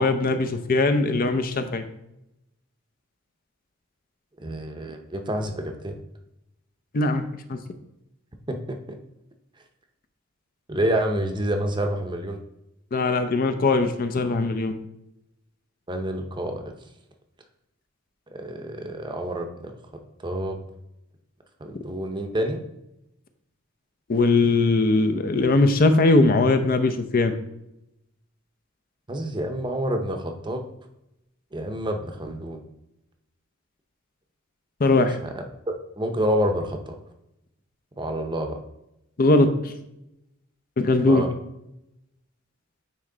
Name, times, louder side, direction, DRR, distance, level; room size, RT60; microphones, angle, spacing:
voice 1, 0.0-1.8 6.9-7.2 7.5-7.6 12.9-14.7 24.1-27.3 34.8-35.2 39.2-39.7 40.8-41.2, left 2 dB, 45° left, 8 dB, 0.5 m, -20 dB
voice 2, 4.4-6.0 8.5-8.6 8.9-9.0 10.7-12.4 15.9-16.7 18.3-19.5 20.2-20.6 21.6-22.6 29.1-30.6 31.5-32.6 35.2-35.3 36.0-37.0 38.0-38.6 41.1-41.3, right 1 dB, 20° right, 4 dB, 0.7 m, -28 dB
9.4 x 3.1 x 3.8 m, 0.86 s
head